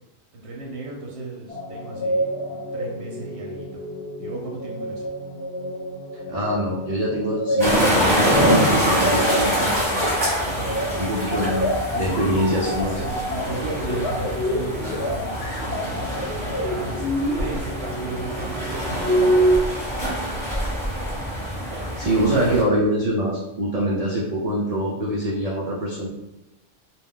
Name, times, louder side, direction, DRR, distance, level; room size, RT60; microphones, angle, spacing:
voice 1, 0.3-3.8 4.2-5.1 8.8-10.1 10.4-11.3 11.9-19.5 20.0-20.5, right 2 dB, 65° right, -1 dB, 0.8 m, -35 dB
sound 1, 1.5-19.6, equal, 60° left, 0.9 m, -27 dB
voice 2, 6.3-9.5 9.9-10.0 11.0-13.0 21.7-26.1, equal, 85° right, -5 dB, 0.3 m, -24 dB
sound 2, 7.6-22.6, equal, ahead, 0.9 m, -25 dB
2.3 x 2.2 x 3.6 m, 0.93 s
omnidirectional pair, 1.3 m